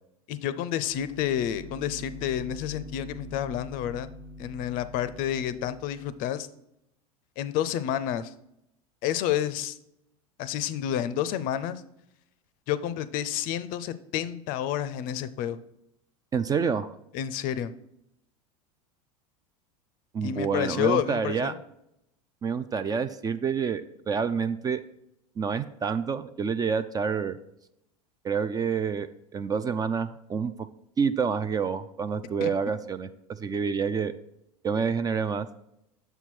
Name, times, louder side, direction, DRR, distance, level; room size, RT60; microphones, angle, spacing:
voice 1, 0.3-4.1 4.4-6.5 7.4-8.3 9.0-9.8 10.4-11.8 12.7-15.6 17.1-17.7 20.2-21.5 32.4-32.5, left 10 dB, 50° left, 14 dB, 0.5 m, -29 dB
sound 1, 0.9-6.2, left 1 dB, 40° right, 1.1 m, -44 dB
voice 2, 16.3-17.0 20.1-21.5 22.4-24.8 25.4-27.4 28.2-30.5 31.0-34.1 34.6-35.5, right 6 dB, 20° right, 12 dB, 0.3 m, -28 dB
6.7 x 4.5 x 4.4 m, 0.80 s
hypercardioid pair, 80°, 19 cm